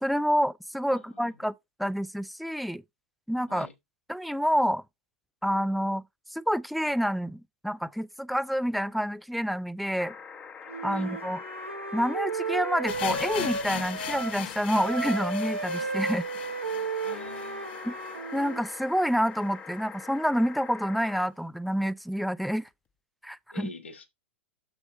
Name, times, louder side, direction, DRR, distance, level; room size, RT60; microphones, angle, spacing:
voice 1, 0.0-1.5 1.8-2.8 3.3-3.7 4.1-4.8 5.4-6.0 6.3-10.1 10.8-11.4 11.9-16.2 17.8-17.9 18.3-22.7 23.2-23.7, equal, ahead, 0.4 m, -28 dB
voice 2, 0.9-1.5 3.5-3.7 10.9-11.1 17.0-17.8 23.5-24.0, left 4 dB, 75° left, 2.3 m, -45 dB
sound 1, 10.0-21.2 22.7-22.8, left 6 dB, 20° left, 0.9 m, -44 dB
Wind instrument woodwind instrument, 10.7-14.4 14.7-18.7, right 4 dB, 85° right, 1.0 m, -34 dB
sound 2, 12.9-18.8 19.0-19.1 19.4-19.5 20.1-20.2, left 12 dB, 55° left, 0.7 m, -39 dB
7.1 x 6.1 x 3.9 m
figure-of-eight pair, 100°, 7 cm